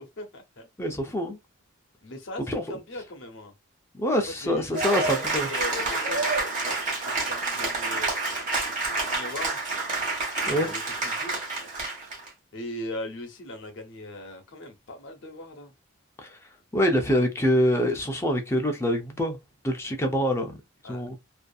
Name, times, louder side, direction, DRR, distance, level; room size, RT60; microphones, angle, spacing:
voice 1, 0.0-0.7 2.0-3.5 4.3-5.1 5.4-8.1 8.9-9.6 10.4-11.4 12.5-15.7 20.8-21.0, left 1 dB, 60° left, 0.8 m, -39 dB
voice 2, 0.8-1.4 2.5-2.8 3.9-5.5 10.5-10.7 16.2-16.3 16.7-19.4 19.6-20.6 20.8-21.2, equal, 10° left, 0.4 m, -25 dB
Cheering / Applause, 4.7-12.3, right 3 dB, 35° right, 1.1 m, -28 dB
2.6 x 2.4 x 2.3 m
head